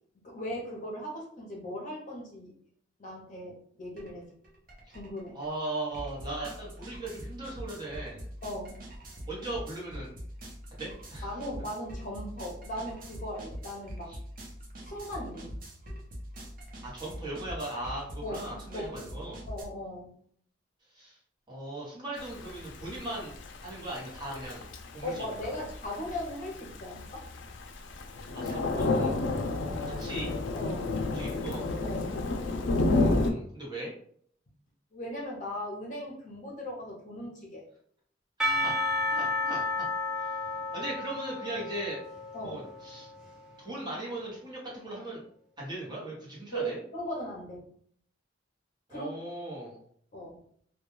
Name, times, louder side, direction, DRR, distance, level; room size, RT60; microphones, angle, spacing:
voice 1, 0.2-2.5 3.0-4.3 4.9-5.4 8.4-8.8 11.2-14.1 14.8-15.6 18.2-20.1 25.0-27.2 30.5-31.0 31.8-32.1 34.9-37.6 42.3-42.6 46.5-47.7 48.9-49.1 50.1-50.4, equal, 45° left, -2 dB, 0.6 m, -38 dB
sound 1, 4.0-4.1 4.4-19.6, equal, 50° right, 0.7 m, -43 dB
voice 2, 5.3-8.3 9.3-10.1 10.8-11.3 14.1-14.2 16.8-19.4 20.9-21.2 21.5-23.3 23.6-25.5 28.3-29.1 29.4-30.3 31.0-31.7 32.9-33.9 38.6-38.7 39.1-39.6 40.2-40.5 40.7-42.0 42.4-43.1 43.6-45.2 45.6-46.8 48.9-49.8, right 1 dB, 25° right, -5 dB, 0.9 m, -38 dB
Thunder / Rain, 22.2-33.3, left 2 dB, 75° left, 0.4 m, -31 dB
Percussion / Church bell, 38.4-43.6, left 2 dB, 5° right, 0.4 m, -32 dB
2.2 x 2.2 x 3.0 m, 0.62 s
head